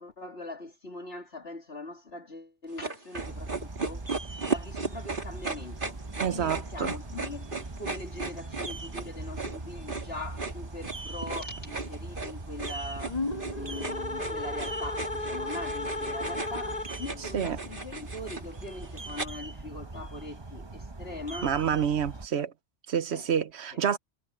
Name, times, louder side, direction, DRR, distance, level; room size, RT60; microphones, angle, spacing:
voice 1, 0.0-21.6 22.3-22.4 23.1-23.3 23.7-23.8, left 2 dB, 70° left, 3.2 m, -42 dB
sound 1, 2.8-19.3, right 3 dB, 50° right, 2.5 m, -36 dB
sound 2, 3.1-22.3, right 2 dB, 25° right, 1.0 m, -41 dB
voice 2, 6.2-6.9 17.3-17.6 21.4-22.5 22.9-24.0, right 8 dB, 80° right, 1.2 m, -28 dB
sound 3, 13.0-17.2, left 2 dB, 40° left, 2.0 m, -34 dB
omnidirectional pair, 1.1 m